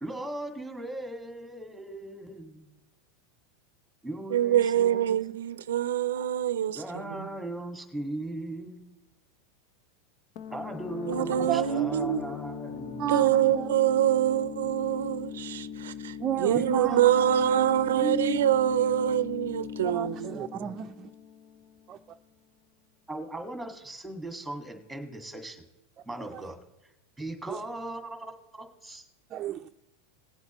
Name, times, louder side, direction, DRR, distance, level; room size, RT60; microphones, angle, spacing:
voice 1, 0.0-2.7 4.0-5.2 6.7-8.8 10.5-13.4 16.5-18.4 23.1-25.6 26.0-26.6 27.2-29.1, right 1 dB, ahead, 2.0 m, -37 dB
voice 2, 4.3-6.8 11.1-12.2 12.8-20.3, right 11 dB, 90° right, 0.5 m, -25 dB
sound 1, 10.4-21.9, left 7 dB, 55° left, 0.8 m, -40 dB
voice 3, 16.2-17.0 19.8-21.1 21.9-22.0 26.3-26.4 27.5-27.6 29.3-29.7, right 10 dB, 30° right, 0.5 m, -32 dB
19.0 x 8.0 x 3.0 m
supercardioid pair, 135°, 0 cm